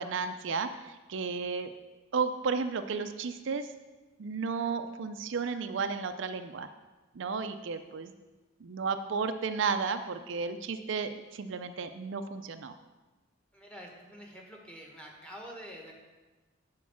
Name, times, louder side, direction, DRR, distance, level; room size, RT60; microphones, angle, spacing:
voice 1, 0.0-1.7 2.1-3.7 4.2-6.7 7.2-8.1 8.6-12.7, right 5 dB, 65° right, 9 dB, 0.5 m, -33 dB
voice 2, 13.5-15.9, equal, 5° left, -1 dB, 1.5 m, -47 dB
8.5 x 4.6 x 7.2 m, 1.2 s
head